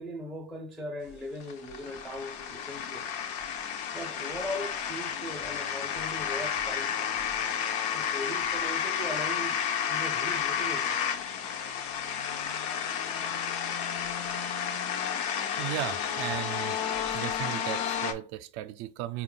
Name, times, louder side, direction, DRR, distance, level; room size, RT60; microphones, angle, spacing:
voice 1, 0.0-3.1 3.9-7.1 7.9-9.6 9.9-11.0, equal, ahead, 0.4 m, -39 dB
sound 1, 1.1-18.1, left 8 dB, 80° left, 0.8 m, -31 dB
voice 2, 15.6-16.8 17.1-19.2, right 13 dB, 70° right, 0.6 m, -36 dB
4.2 x 2.3 x 3.7 m
supercardioid pair, 100°, 50 cm